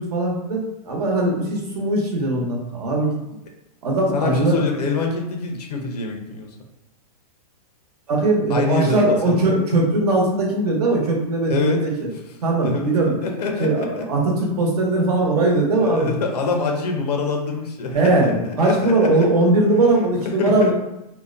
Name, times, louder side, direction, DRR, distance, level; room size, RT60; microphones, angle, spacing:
voice 1, 0.0-3.2 3.8-4.6 8.1-12.1 12.4-13.2 13.6-16.1 17.9-20.7, right 2 dB, 75° right, -1 dB, 0.9 m, -20 dB
voice 2, 4.1-6.5 8.5-9.4 11.5-11.8 12.6-14.0 15.8-19.3 20.2-20.7, left 4 dB, 85° left, 2 dB, 0.7 m, -25 dB
2.8 x 2.1 x 2.5 m, 0.90 s
hypercardioid pair, 145°, 20 cm